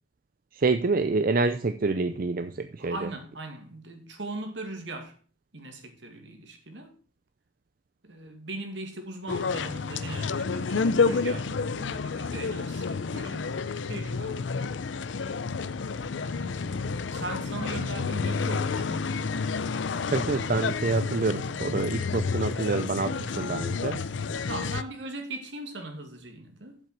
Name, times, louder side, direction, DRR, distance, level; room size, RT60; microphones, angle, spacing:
voice 1, 0.5-3.0 20.1-24.0, right 3 dB, 50° right, 0.5 m, -27 dB
voice 2, 2.8-5.2 5.5-6.9 8.0-14.4 16.1-16.8 17.1-19.4 24.5-26.8, right 2 dB, 75° right, 2.3 m, -39 dB
sound 1, 9.3-24.8, left 4 dB, 85° left, 0.6 m, -30 dB
8.0 x 7.6 x 6.0 m
head